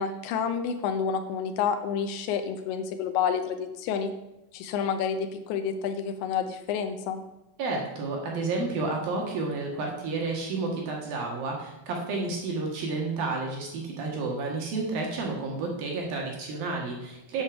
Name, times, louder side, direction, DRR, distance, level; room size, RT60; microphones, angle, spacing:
voice 1, 0.0-4.1 4.5-7.2, left 7 dB, 80° left, 7 dB, 2.9 m, -29 dB
voice 2, 7.6-17.4, right 3 dB, 60° right, -1 dB, 2.9 m, -31 dB
9.8 x 6.7 x 7.0 m, 0.91 s
omnidirectional pair, 5.9 m